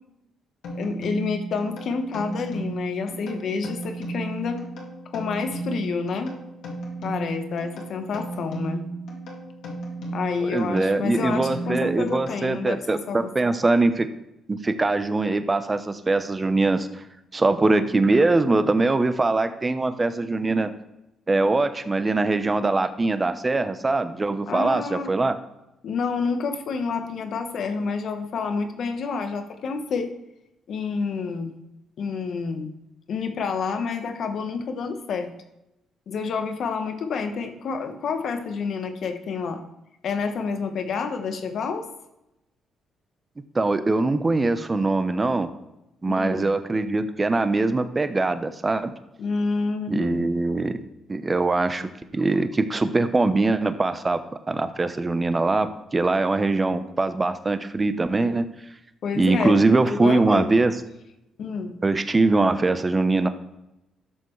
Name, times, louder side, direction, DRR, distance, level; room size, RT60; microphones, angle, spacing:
sound 1, 0.6-12.8, right 2 dB, 80° left, 2.2 m, -35 dB
voice 1, 0.7-4.6 5.1-6.4 7.0-8.8 10.1-13.3 24.5-25.1 25.8-30.1 30.7-31.5 32.0-32.7 33.1-35.3 36.1-39.6 40.0-41.9 46.1-46.5 49.2-50.3 59.0-60.5 61.4-61.8, left 5 dB, 65° left, 7 dB, 1.1 m, -28 dB
voice 2, 10.4-14.1 14.5-17.0 17.3-20.7 21.3-25.4 43.5-45.5 46.0-48.9 49.9-50.8 51.1-54.2 54.5-58.5 59.1-60.8 61.8-63.3, right 3 dB, 25° right, 10 dB, 0.7 m, -22 dB
12.0 x 6.7 x 3.2 m, 0.89 s
cardioid pair, 90°, 0 cm